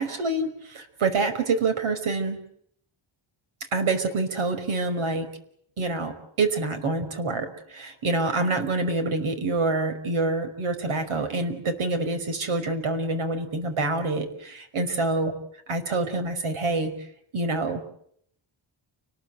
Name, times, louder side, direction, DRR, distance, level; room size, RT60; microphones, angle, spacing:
voice 1, 0.0-2.4 3.7-5.3 5.8-15.3 15.7-16.9 17.3-17.8, right 3 dB, 85° right, 9 dB, 5.4 m, -26 dB
30.0 x 21.0 x 9.1 m, 0.68 s
wide cardioid pair, 160°, 48 cm